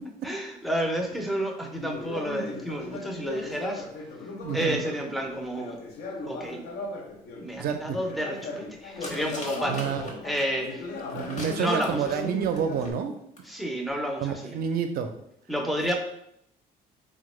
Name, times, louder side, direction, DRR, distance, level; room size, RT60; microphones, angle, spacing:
voice 1, 0.2-3.9 4.5-5.8 6.3-6.6 7.4-9.8 10.2-10.9 11.4-12.4 13.5-14.6 15.5-16.0, equal, ahead, 1 dB, 0.5 m, -30 dB
Conversation, 1.8-7.5 8.0-12.9, left 2 dB, 70° left, 0.6 m, -37 dB
voice 2, 4.4-4.8 7.6-8.0 9.6-10.0 11.1-13.1 14.2-15.2 15.8-16.0, right 7 dB, 60° right, 6 dB, 0.4 m, -29 dB
sound 1, 9.0-10.1 11.0-12.9 13.4-13.5 13.6-13.7, left 1 dB, 45° left, 0.9 m, -41 dB
3.5 x 2.1 x 3.0 m, 0.76 s
cardioid pair, 110°, 17 cm